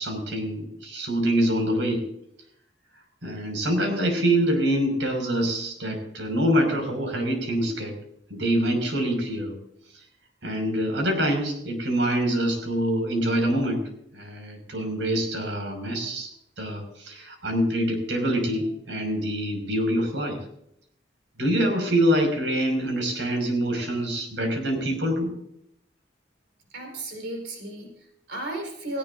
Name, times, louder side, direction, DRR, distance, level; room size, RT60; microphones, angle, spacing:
voice 1, 0.0-2.0 3.2-8.0 8.3-9.6 10.4-13.8 14.1-16.3 16.6-20.4 21.4-25.3, equal, 90° right, 4 dB, 5.5 m, -25 dB
voice 2, 26.7-29.0, right 2 dB, 70° right, 2 dB, 4.6 m, -34 dB
18.5 x 17.0 x 2.6 m, 0.73 s
head